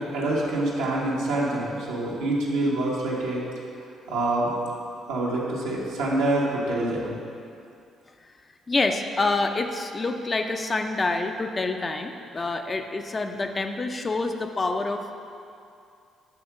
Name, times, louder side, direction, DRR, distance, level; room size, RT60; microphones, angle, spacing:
voice 1, 0.0-3.4 4.1-4.5 5.1-7.2, right 2 dB, 85° right, -6 dB, 1.5 m, -26 dB
voice 2, 8.7-15.1, left 3 dB, 35° left, 5 dB, 0.6 m, -27 dB
8.8 x 3.6 x 6.0 m, 2.5 s
hypercardioid pair, 50°, 0 cm